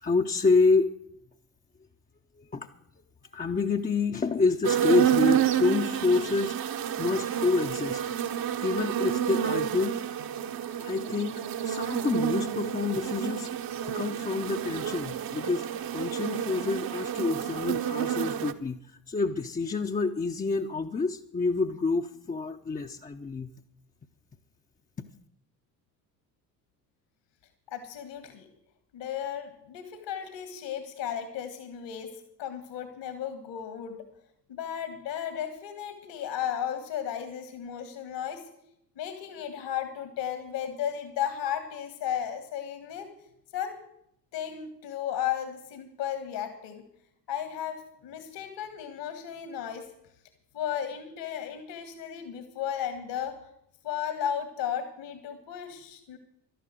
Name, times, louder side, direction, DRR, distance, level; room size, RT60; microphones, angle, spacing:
voice 1, 0.0-0.9 2.4-2.7 3.3-8.0 8.6-10.0 10.8-13.5 13.9-15.7 15.9-23.5, left 4 dB, 15° left, 3 dB, 0.8 m, -28 dB
sound 1, 4.6-18.5, right 9 dB, 45° right, 1.2 m, -29 dB
voice 2, 27.7-28.5 28.9-32.1 32.4-34.0 34.5-38.4 39.0-43.1 43.5-43.8 44.3-46.8 47.3-49.9 50.5-53.4 53.8-56.2, left 9 dB, 60° left, 9 dB, 2.0 m, -34 dB
12.0 x 11.0 x 7.8 m, 0.75 s
figure-of-eight pair, 50°, 48 cm